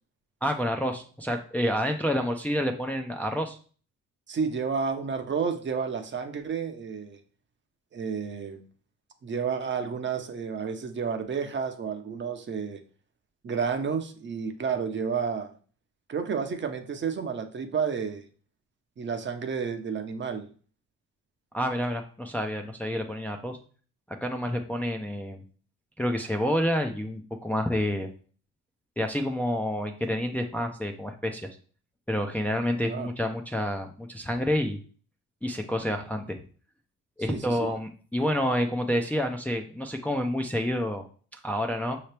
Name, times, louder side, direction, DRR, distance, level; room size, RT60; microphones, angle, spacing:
voice 1, 0.4-3.6 21.5-23.6 24.2-25.4 26.0-28.1 29.0-31.4 32.1-34.8 35.4-36.4 37.2-41.0 41.4-42.0, equal, 5° left, 3 dB, 0.5 m, -28 dB
voice 2, 4.3-7.2 7.9-8.6 9.2-12.8 13.4-15.5 16.1-18.2 19.0-20.5 32.9-33.1 37.2-37.7, right 6 dB, 40° right, 6 dB, 0.7 m, -31 dB
5.6 x 2.9 x 3.3 m, 0.42 s
cardioid pair, 90°, 30 cm